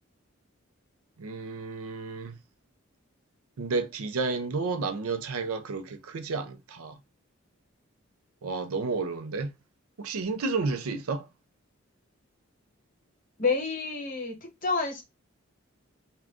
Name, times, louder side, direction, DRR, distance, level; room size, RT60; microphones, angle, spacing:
voice 1, 1.2-2.3 3.6-6.9 8.4-9.5 10.0-11.3, right 4 dB, 90° right, 0.5 m, -31 dB
voice 2, 13.4-14.4 14.6-15.0, left 4 dB, 40° left, 0.9 m, -28 dB
2.5 x 2.2 x 3.4 m
head